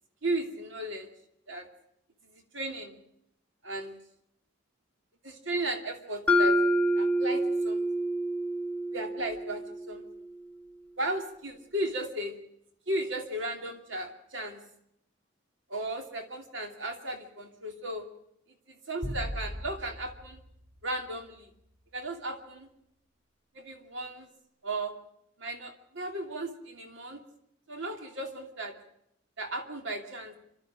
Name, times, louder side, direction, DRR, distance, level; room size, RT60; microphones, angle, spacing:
voice 1, 0.2-1.1 1.5-1.7 2.2-2.9 3.6-4.0 5.2-6.6 7.0-8.1 8.9-10.0 11.0-12.4 12.9-14.6 15.7-18.1 18.7-20.4 20.8-21.5 21.9-22.7 23.5-24.3 24.6-24.9 25.4-27.2 27.7-28.8 29.4-30.4, right 1 dB, 60° right, 4 dB, 2.8 m, -35 dB
Mallet percussion, 6.3-10.3, equal, 5° left, 0.8 m, -27 dB
sound 1, 19.0-21.6, equal, 35° right, 3.9 m, -39 dB
28.0 x 12.5 x 7.4 m, 0.75 s
head